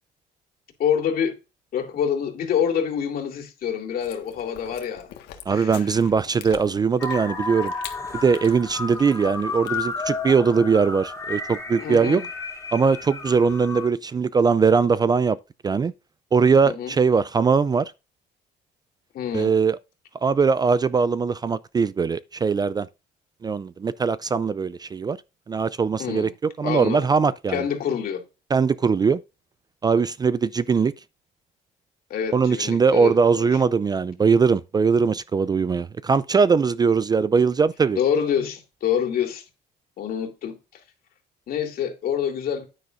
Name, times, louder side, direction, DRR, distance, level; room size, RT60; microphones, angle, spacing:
voice 1, 0.8-1.4 1.7-5.1 5.5-5.9 11.8-12.2 16.6-17.0 19.1-19.5 26.0-26.3 26.6-27.1 27.5-28.2 32.1-33.5 38.0-39.4 40.0-40.6 41.5-42.7, left 8 dB, 60° left, 2.5 m, -26 dB
Chewing mastication, 4.0-10.1, left 10 dB, 90° left, 1.6 m, -44 dB
voice 2, 5.5-7.7 8.2-12.2 12.7-15.4 15.6-15.9 16.3-17.9 19.3-19.8 20.2-22.9 23.4-25.2 25.5-26.3 26.6-27.6 28.5-29.2 29.8-30.9 32.3-38.0, right 5 dB, 25° right, 0.4 m, -21 dB
sound 1, 7.0-13.9, left 3 dB, 15° left, 2.7 m, -32 dB
9.6 x 9.5 x 2.5 m
cardioid pair, 110°, 17 cm